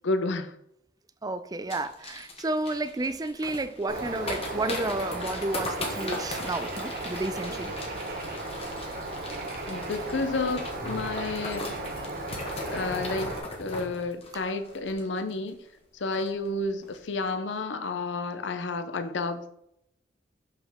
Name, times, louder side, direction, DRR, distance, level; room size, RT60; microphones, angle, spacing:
voice 1, 0.0-0.5 9.7-11.8 12.7-15.6 15.9-19.5, left 3 dB, 70° left, 0.6 m, -31 dB
voice 2, 1.2-7.7 14.3-14.4, right 2 dB, 20° right, 0.4 m, -31 dB
sound 1, 1.7-15.5 15.8-15.9 16.1-16.5 16.8-17.0, left 2 dB, 35° left, 1.4 m, -39 dB
Bird, 3.9-13.4, right 2 dB, 55° right, 1.3 m, -35 dB
6.5 x 5.9 x 3.6 m
head